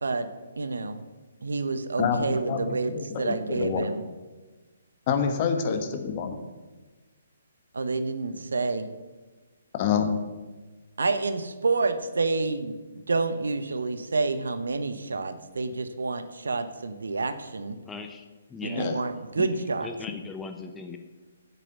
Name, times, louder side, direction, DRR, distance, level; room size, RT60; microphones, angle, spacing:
voice 1, 0.6-1.0 1.4-2.9 3.2-4.0 7.7-8.9 11.0-12.8 13.1-17.8 18.6-19.9, right 3 dB, 65° right, 10 dB, 0.9 m, -28 dB
voice 2, 2.0-3.8 5.1-6.4 9.8-10.1 18.7-18.9, left 6 dB, 35° left, 6 dB, 1.4 m, -27 dB
voice 3, 17.8-18.2 18.5-18.9 19.4-21.0, left 4 dB, 10° left, 5 dB, 0.7 m, -39 dB
8.2 x 7.5 x 8.1 m, 1.2 s
figure-of-eight pair, 130°, 0 cm